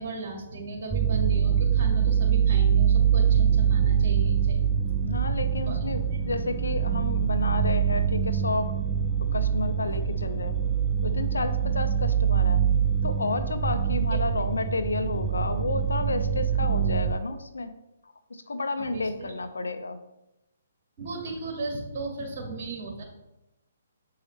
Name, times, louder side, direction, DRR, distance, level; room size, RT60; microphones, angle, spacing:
voice 1, 0.0-4.8 5.7-5.8 6.1-6.2 14.1-14.2 18.8-19.3 21.0-23.0, right 3 dB, 45° right, 1 dB, 2.0 m, -36 dB
sound 1, 0.9-17.2, right 8 dB, 15° right, 0.4 m, -24 dB
voice 2, 5.0-8.7 9.3-10.6 11.0-12.6 13.0-17.7 18.3-20.0, left 2 dB, 90° left, 9 dB, 0.7 m, -31 dB
7.5 x 4.7 x 3.3 m, 0.92 s
hypercardioid pair, 150°, 0 cm